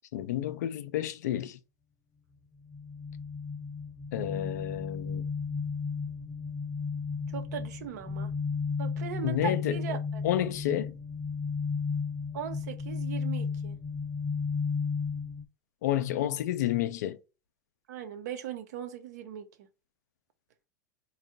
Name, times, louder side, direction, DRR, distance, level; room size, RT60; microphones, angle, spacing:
voice 1, 0.1-1.6 4.1-5.2 9.2-9.8 10.2-11.0 15.8-17.2, left 12 dB, 65° left, 0.5 m, -30 dB
sound 1, 2.7-15.4, left 5 dB, 35° left, 0.7 m, -34 dB
voice 2, 7.3-8.3 8.8-10.2 12.3-13.8 17.9-19.7, right 7 dB, 65° right, 0.8 m, -38 dB
4.3 x 2.4 x 3.7 m
hypercardioid pair, 90°, 10 cm